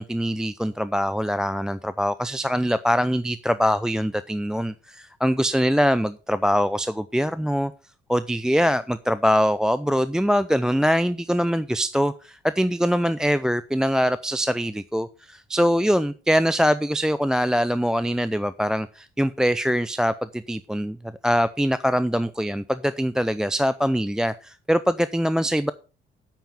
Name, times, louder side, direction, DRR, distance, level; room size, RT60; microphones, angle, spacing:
voice 1, 0.0-7.7 8.1-21.0 21.2-25.7, equal, 5° right, 0.5 m, -23 dB
9.3 x 7.0 x 5.6 m
cardioid pair, 90°, 20 cm